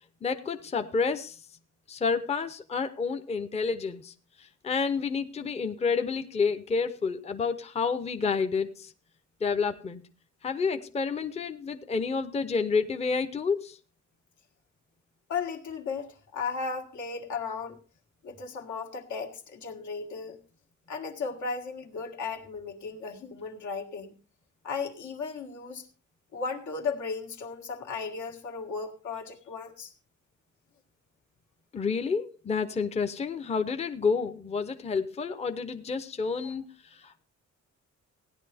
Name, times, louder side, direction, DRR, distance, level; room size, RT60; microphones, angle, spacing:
voice 1, 0.2-1.5 1.9-8.9 9.4-10.0 10.4-13.8 31.7-37.2, left 5 dB, 20° left, 9 dB, 0.6 m, -29 dB
voice 2, 15.3-17.8 18.2-20.4 20.9-24.1 24.6-25.9 26.3-29.9 36.4-36.5, left 5 dB, 80° left, 3 dB, 1.9 m, -35 dB
16.5 x 10.0 x 3.4 m, 0.36 s
cardioid pair, 140°, 29 cm